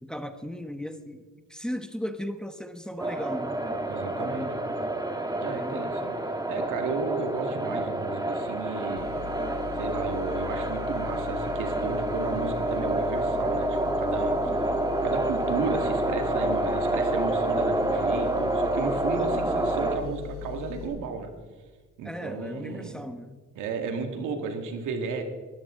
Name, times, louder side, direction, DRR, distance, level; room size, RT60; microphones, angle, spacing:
voice 1, 0.0-3.6 4.2-4.6 5.5-5.9 9.3-9.4 14.5-14.6 19.3-19.4 22.0-23.4, equal, ahead, 8 dB, 1.1 m, -36 dB
sound 1, 3.0-20.0, right 2 dB, 15° right, 1.7 m, -28 dB
voice 2, 3.9-4.5 5.4-6.2 6.5-9.2 9.7-14.5 15.0-21.3 22.0-23.0 23.6-25.2, right 4 dB, 90° right, 5 dB, 2.0 m, -33 dB
sound 2, 9.0-20.9, left 9 dB, 90° left, 5.9 m, -40 dB
20.5 x 14.0 x 3.8 m, 1.4 s
cardioid pair, 90°, 30 cm